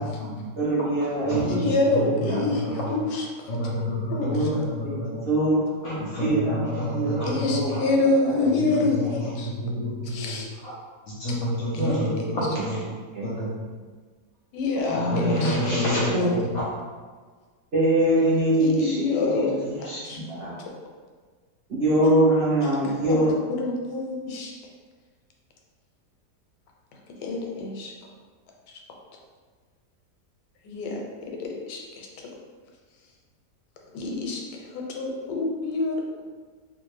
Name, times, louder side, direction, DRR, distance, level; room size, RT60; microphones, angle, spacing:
voice 1, 0.0-0.5 1.2-1.7 2.2-2.3 2.6-2.9 3.5-5.2 5.8-7.8 9.2-9.3 9.6-10.4 10.6-10.7 11.1-12.8 13.2-13.7 14.9-16.6, equal, 65° left, -6 dB, 0.8 m, -29 dB
voice 2, 0.6-1.6 2.0-2.2 4.2-7.8 8.3-8.5 11.7-12.1 12.4-12.7 13.1-13.3 14.8-15.8 16.1-16.3 17.7-19.1 19.3-20.5 21.7-23.3, right 1 dB, 50° right, -9 dB, 0.8 m, -24 dB
voice 3, 1.4-3.7 4.1-4.5 7.2-9.5 10.0-10.5 11.7-12.0 12.3-12.4 14.5-15.6 15.8-16.3 18.5-19.5 19.8-20.2 20.6-20.7 22.0-22.3 23.0-23.2 23.5-24.5 26.9-28.1 28.7-28.8 30.6-32.4 33.9-36.0, left 3 dB, 85° left, 0 dB, 1.2 m, -27 dB
2.6 x 2.4 x 3.1 m, 1.5 s
omnidirectional pair, 1.8 m